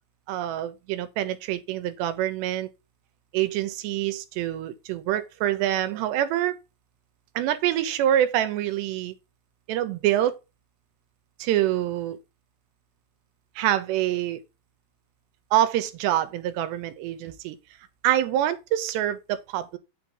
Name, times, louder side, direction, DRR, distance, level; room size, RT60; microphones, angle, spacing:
voice 1, 0.3-2.7 3.3-6.6 7.4-9.1 9.7-10.3 11.4-12.2 13.6-14.4 15.5-17.6 18.0-19.8, right 12 dB, 85° right, 3.0 m, -26 dB
8.4 x 6.4 x 3.8 m
omnidirectional pair, 4.9 m